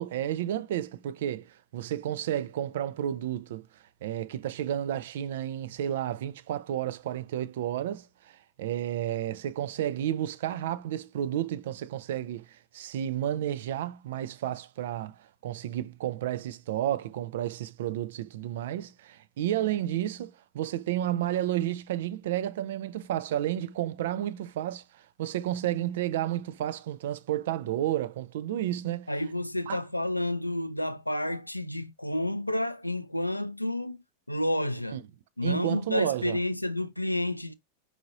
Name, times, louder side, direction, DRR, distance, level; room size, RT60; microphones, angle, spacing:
voice 1, 0.0-3.7 4.0-24.8 25.2-29.1 29.7-29.8 34.9-35.0 35.4-36.4, right 12 dB, 55° right, 0.4 m, -31 dB
voice 2, 29.1-34.0 34.3-35.0 35.4-37.5, left 1 dB, 85° left, 0.4 m, -30 dB
4.9 x 3.9 x 2.5 m
figure-of-eight pair, 90°, 0 cm